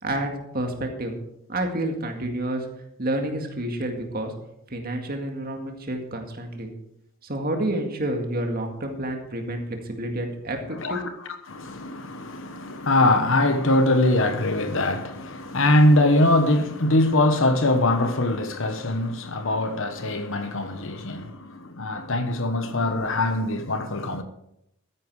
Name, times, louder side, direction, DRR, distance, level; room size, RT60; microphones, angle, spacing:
voice 1, 0.0-1.2 1.5-2.7 3.0-4.3 4.7-6.7 7.2-11.0, right 1 dB, 40° right, 2.0 m, -29 dB
voice 2, 11.5-24.2, left 1 dB, 60° left, 1.2 m, -22 dB
13.5 x 10.0 x 4.8 m
head